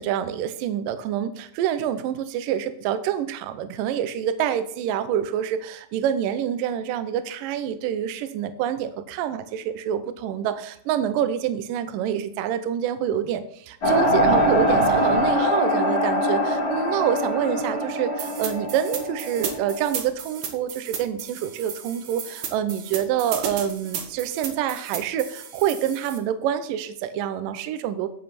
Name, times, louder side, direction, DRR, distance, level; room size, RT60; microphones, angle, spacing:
voice 1, 0.0-28.1, right 9 dB, 85° right, 10 dB, 1.9 m, -27 dB
sound 1, 13.8-19.9, equal, 25° left, 3.0 m, -23 dB
sound 2, 18.2-26.2, right 8 dB, 65° right, 2.5 m, -34 dB
10.5 x 7.9 x 4.3 m, 0.67 s
omnidirectional pair, 5.1 m